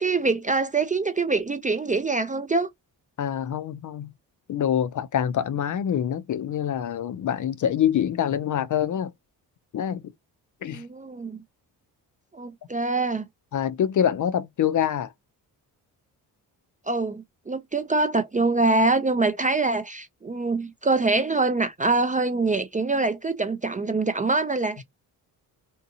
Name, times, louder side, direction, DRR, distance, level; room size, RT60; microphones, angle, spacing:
voice 1, 0.0-2.7 10.7-11.4 12.3-13.3 16.9-24.8, right 3 dB, 20° right, 0.4 m, -24 dB
voice 2, 3.2-4.1 4.5-9.1 9.7-10.0 10.6-10.8 13.5-15.1, left 9 dB, 45° left, 0.5 m, -25 dB
2.8 x 2.4 x 2.6 m
supercardioid pair, 55°, 44 cm